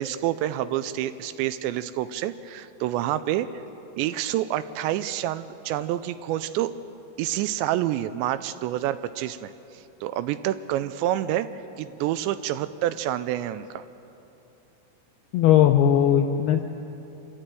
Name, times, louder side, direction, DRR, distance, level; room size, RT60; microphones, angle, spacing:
voice 1, 0.0-3.5 4.0-6.7 7.2-11.5 11.8-13.8, right 13 dB, 80° right, 13 dB, 2.7 m, -28 dB
voice 2, 15.3-16.6, left 10 dB, 90° left, 5 dB, 2.3 m, -18 dB
26.0 x 13.5 x 9.1 m, 2.9 s
omnidirectional pair, 5.3 m